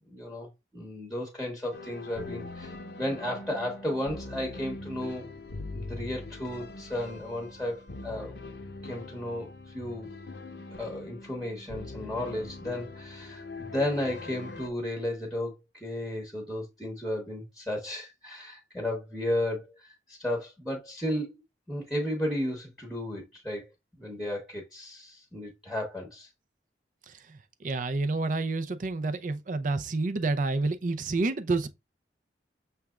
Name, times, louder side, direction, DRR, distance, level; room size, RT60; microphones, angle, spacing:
voice 1, 0.1-5.3 5.7-8.4 8.8-10.1 10.8-15.5 15.8-23.6 24.0-26.3, left 1 dB, ahead, 1.0 m, -34 dB
sound 1, 1.7-14.7, left 2 dB, 65° left, 0.7 m, -42 dB
voice 2, 27.1-31.7, right 3 dB, 45° right, 0.5 m, -29 dB
5.9 x 3.3 x 2.3 m
head